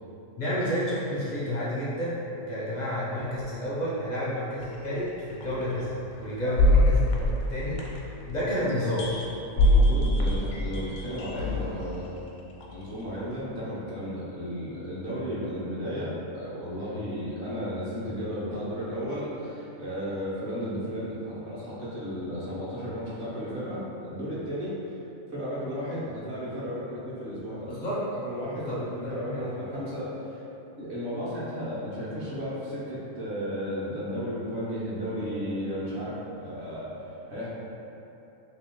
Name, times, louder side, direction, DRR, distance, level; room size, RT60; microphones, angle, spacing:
voice 1, 0.4-9.1 27.7-28.0 28.6-29.4, equal, 50° left, -7 dB, 0.5 m, -30 dB
sound 1, 4.6-4.7 5.4-5.5 6.6-8.3 8.7-11.8 12.6-12.7, left 1 dB, 85° left, 1.0 m, -23 dB
voice 2, 9.5-12.1 12.7-24.9 25.3-27.8 28.2-30.4 30.8-37.5, equal, 55° right, -8 dB, 1.2 m, -34 dB
3.0 x 2.9 x 3.6 m, 2.9 s
omnidirectional pair, 1.4 m